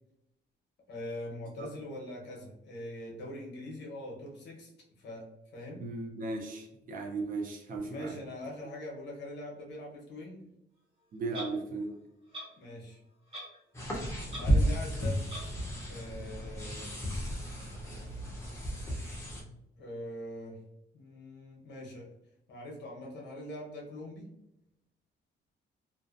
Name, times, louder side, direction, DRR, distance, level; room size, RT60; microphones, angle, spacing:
voice 1, 0.9-5.8 7.8-10.5 12.5-13.0 14.3-15.2 15.9-17.0 19.8-20.6 20.9-22.1 22.5-24.3, left 1 dB, 70° left, -2 dB, 0.8 m, -43 dB
voice 2, 5.8-8.2 11.1-12.0, right 3 dB, 50° right, 2 dB, 0.5 m, -36 dB
Clock, 11.3-11.5 12.3-12.5 13.3-13.6 13.9-14.0 14.3-14.5 15.3-15.5, right 1 dB, 30° right, 0.9 m, -41 dB
sound 1, 13.7-19.4, equal, 15° left, 0.5 m, -33 dB
2.6 x 2.1 x 2.4 m, 0.84 s
cardioid pair, 150°, 19 cm